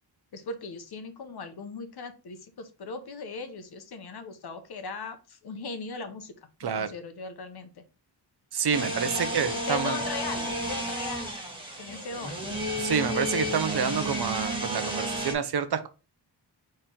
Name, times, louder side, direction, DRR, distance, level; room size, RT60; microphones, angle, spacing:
voice 1, 0.3-6.4 6.6-7.8 8.9-9.2 9.7-11.4 11.8-12.4, left 4 dB, 60° left, 8 dB, 0.8 m, -38 dB
voice 2, 8.5-10.0 12.8-15.9, right 7 dB, 60° right, 10 dB, 0.7 m, -28 dB
sound 1, 8.7-15.3, equal, 10° right, 1.3 m, -32 dB
4.3 x 3.2 x 3.7 m, 0.32 s
wide cardioid pair, 120°, 43 cm